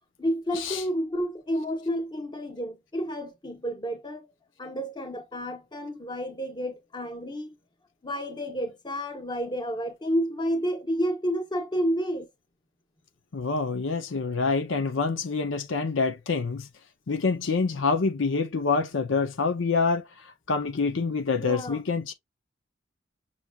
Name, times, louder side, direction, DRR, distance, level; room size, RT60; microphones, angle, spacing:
voice 1, 0.2-4.3 4.6-7.5 8.0-12.3 21.4-21.8, equal, 25° left, 1.0 m, -30 dB
voice 2, 13.3-16.7 17.1-20.0 20.5-22.1, left 4 dB, 90° left, 0.7 m, -26 dB
5.9 x 2.9 x 2.3 m
head